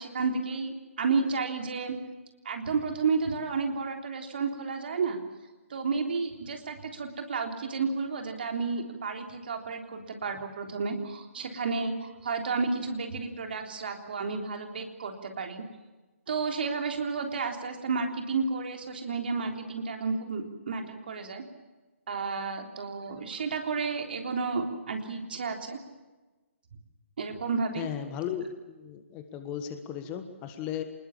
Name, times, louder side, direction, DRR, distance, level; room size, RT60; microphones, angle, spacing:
voice 1, 0.0-2.0 2.5-5.2 5.7-15.6 16.3-21.4 22.1-25.8 27.2-27.9, right 4 dB, 45° right, 4 dB, 3.5 m, -31 dB
voice 2, 27.8-30.8, left 9 dB, 20° left, 9 dB, 1.5 m, -36 dB
27.0 x 20.5 x 7.3 m, 1.2 s
figure-of-eight pair, 140°, 7 cm